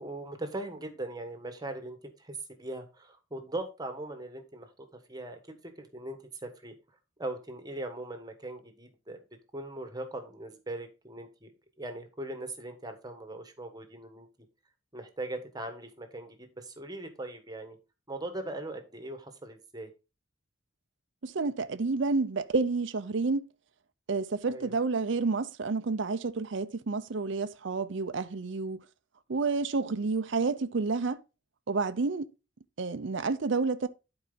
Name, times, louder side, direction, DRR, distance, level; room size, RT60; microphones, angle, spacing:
voice 1, 0.0-6.7 7.2-9.2 9.5-11.5 11.8-14.3 14.9-17.8 18.1-19.9 24.5-24.7, right 2 dB, 20° right, 1.4 m, -40 dB
voice 2, 21.2-23.5 24.1-28.8 29.3-31.2 31.7-32.3 32.8-33.9, right 4 dB, 65° right, 0.6 m, -29 dB
11.5 x 4.7 x 3.9 m
head